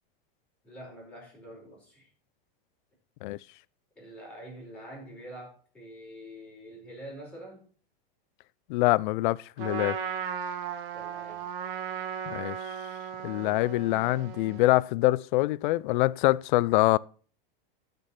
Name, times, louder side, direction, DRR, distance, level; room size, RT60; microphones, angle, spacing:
voice 1, 0.6-2.1 4.0-7.7 10.9-11.5, equal, 5° left, 5.4 m, -46 dB
voice 2, 8.7-10.0 12.3-12.6 13.2-17.0, left 18 dB, 55° left, 0.5 m, -25 dB
Trumpet, 9.6-14.8, right 7 dB, 65° right, 2.0 m, -36 dB
12.0 x 5.4 x 5.8 m
supercardioid pair, 145°, 29 cm